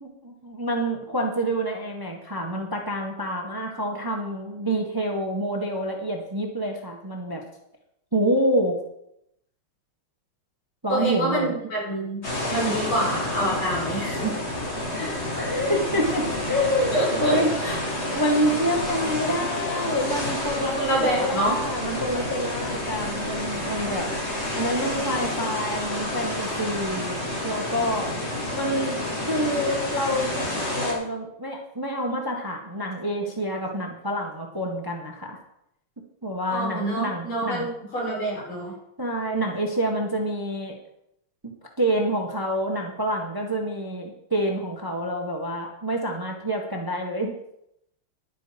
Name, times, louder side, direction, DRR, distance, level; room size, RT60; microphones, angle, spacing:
voice 1, 0.0-7.4 8.1-8.8 10.8-11.5 15.3-17.6 17.8-24.1 24.5-27.1 27.4-28.1 28.5-30.5 30.7-35.4 36.2-37.7 39.0-40.7 41.4-47.3, equal, 10° right, 2 dB, 1.2 m, -27 dB
voice 2, 10.9-12.2 12.5-14.3 14.9-15.2 16.9-17.8 20.6-21.6 36.5-38.7, right 1 dB, 75° left, -4 dB, 6.0 m, -27 dB
sound 1, 12.2-30.9, left 1 dB, 30° left, 2.6 m, -29 dB
11.0 x 9.0 x 5.2 m, 0.79 s
omnidirectional pair, 2.4 m